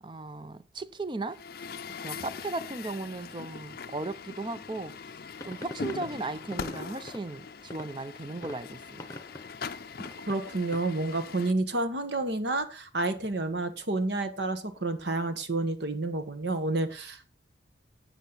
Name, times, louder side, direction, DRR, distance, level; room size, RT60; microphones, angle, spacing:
voice 1, 0.0-1.4 2.0-5.1 5.4-9.0, right 2 dB, 25° right, 0.5 m, -36 dB
Truck, 1.3-11.5, left 5 dB, 50° left, 0.5 m, -41 dB
sound 1, 5.3-11.0, left 1 dB, 15° left, 0.9 m, -47 dB
voice 2, 10.3-17.3, right 2 dB, 65° right, 1.3 m, -30 dB
10.5 x 8.3 x 4.0 m
head